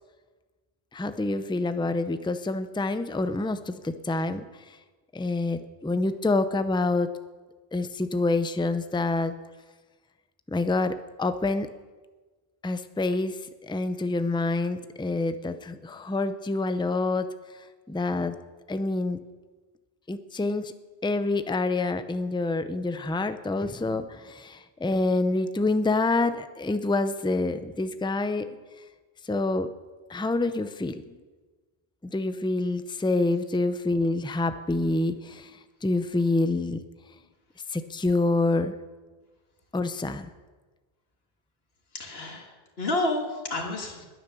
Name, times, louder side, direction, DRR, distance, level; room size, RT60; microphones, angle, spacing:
voice 1, 0.9-4.4 5.1-7.1 7.7-9.3 10.5-11.7 12.6-17.3 17.9-18.3 18.7-19.2 20.1-20.7 21.0-28.6 29.2-29.7 30.1-31.1 32.0-35.5 35.8-36.8 37.7-38.7 39.7-40.3, left 2 dB, 5° left, 10 dB, 0.6 m, -27 dB
voice 2, 41.9-44.0, left 2 dB, 70° left, 2 dB, 2.2 m, -30 dB
21.0 x 9.4 x 6.9 m, 1.3 s
omnidirectional pair, 1.1 m